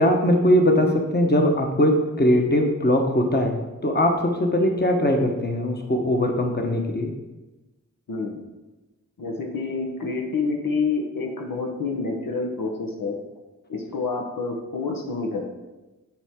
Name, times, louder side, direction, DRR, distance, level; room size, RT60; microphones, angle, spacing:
voice 1, 0.0-7.1, left 1 dB, 30° left, 2 dB, 1.0 m, -21 dB
voice 2, 8.1-8.4 9.2-13.2 13.7-15.4, left 4 dB, 80° left, 1 dB, 1.0 m, -28 dB
7.1 x 4.5 x 3.6 m, 1.1 s
cardioid pair, 45°, 33 cm